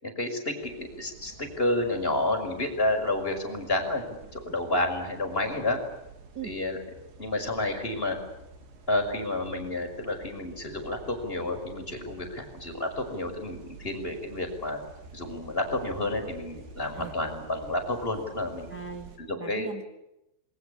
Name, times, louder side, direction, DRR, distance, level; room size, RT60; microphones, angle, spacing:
voice 1, 0.0-5.8 6.4-6.8 7.2-8.2 8.9-14.8 15.1-18.7 19.2-19.7, left 1 dB, 10° left, 3 dB, 5.6 m, -30 dB
sound 1, 0.6-19.2, right 4 dB, 80° right, 5.7 m, -49 dB
voice 2, 18.7-19.8, right 6 dB, 40° right, 5 dB, 1.5 m, -39 dB
28.0 x 22.5 x 8.5 m, 0.88 s
omnidirectional pair, 5.0 m